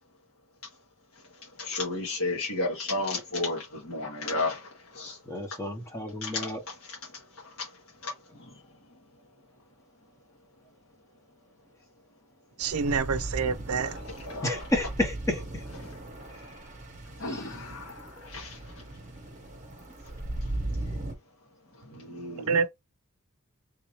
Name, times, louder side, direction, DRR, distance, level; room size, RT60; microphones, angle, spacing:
voice 1, 1.1-5.2 5.5-5.6 6.2-9.0 13.7-14.7 15.8-16.5 17.2-18.9 20.0-20.5 21.7-22.5, left 2 dB, 70° left, 1.7 m, -35 dB
voice 2, 5.3-6.6 14.4-15.6 17.3-17.5, left 1 dB, 15° left, 0.9 m, -31 dB
sound 1, 12.6-21.1, right 1 dB, 35° right, 1.0 m, -38 dB
voice 3, 12.6-14.0 21.9-22.0 22.5-22.7, right 5 dB, 75° right, 0.5 m, -27 dB
3.5 x 2.8 x 3.1 m
head